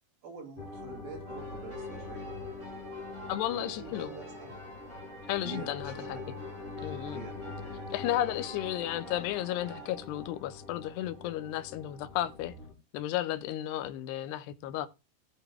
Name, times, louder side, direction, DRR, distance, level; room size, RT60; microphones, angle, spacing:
voice 1, 0.2-2.3 3.5-4.5 5.4-6.3 7.1-7.4, right 5 dB, 60° right, 4.2 m, -46 dB
sound 1, 0.6-12.7, left 3 dB, 55° left, 3.5 m, -43 dB
sound 2, 1.3-9.9, right 2 dB, 20° right, 2.4 m, -49 dB
voice 2, 3.3-4.1 5.3-6.2 6.8-7.2 7.9-12.5 12.9-14.9, left 13 dB, 85° left, 2.7 m, -33 dB
17.0 x 6.9 x 2.2 m
omnidirectional pair, 4.8 m